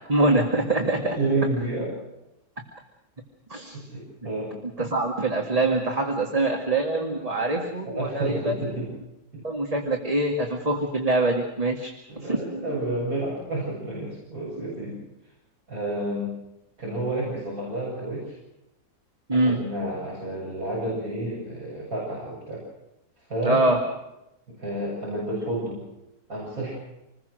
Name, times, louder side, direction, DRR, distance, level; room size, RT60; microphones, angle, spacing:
voice 1, 0.1-1.2 3.5-3.8 4.8-8.5 9.4-11.9 12.2-12.4 19.3-19.6 23.4-23.8, right 2 dB, 25° right, 2 dB, 2.1 m, -24 dB
voice 2, 0.9-1.9 3.7-4.5 7.1-7.5 7.8-8.9 9.3-9.4 12.1-15.0 15.7-16.3 16.8-18.4 19.3-22.6 23.3-23.6 24.6-25.8 26.3-26.7, right 2 dB, 70° right, -5 dB, 8.4 m, -30 dB
27.5 x 20.5 x 6.5 m, 0.90 s
omnidirectional pair, 1.5 m